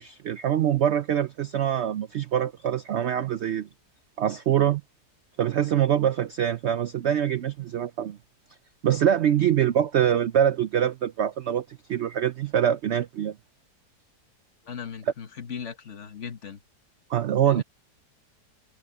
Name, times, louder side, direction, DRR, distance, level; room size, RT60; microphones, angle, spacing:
voice 1, 0.0-3.7 4.2-4.8 5.4-8.2 8.8-13.4 17.1-17.6, right 10 dB, 70° right, 0.6 m, -24 dB
voice 2, 14.6-16.6 17.5-17.6, left 7 dB, 50° left, 1.4 m, -38 dB
omnidirectional pair, 1.8 m